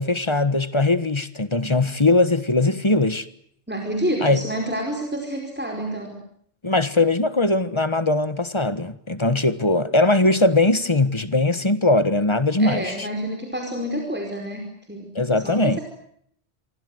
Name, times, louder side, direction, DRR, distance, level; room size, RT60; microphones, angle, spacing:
voice 1, 0.0-3.3 4.2-4.4 6.6-13.1 15.1-15.8, left 2 dB, 25° left, 1.5 m, -20 dB
voice 2, 3.7-6.2 12.6-15.8, equal, 10° right, 4.9 m, -29 dB
27.5 x 23.5 x 7.9 m
omnidirectional pair, 1.1 m